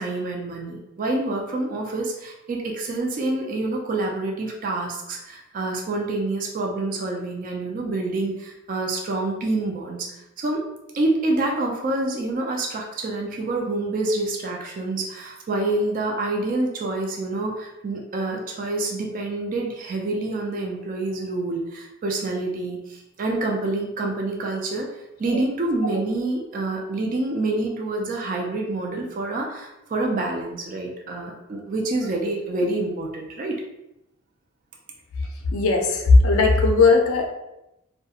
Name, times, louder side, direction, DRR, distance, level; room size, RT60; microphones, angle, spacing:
voice 1, 0.0-10.1 10.4-10.6 10.9-33.6, right 2 dB, 40° right, 0 dB, 0.3 m, -27 dB
voice 2, 35.5-37.3, left 3 dB, 85° left, 2 dB, 0.4 m, -17 dB
2.3 x 2.1 x 2.7 m, 0.89 s
head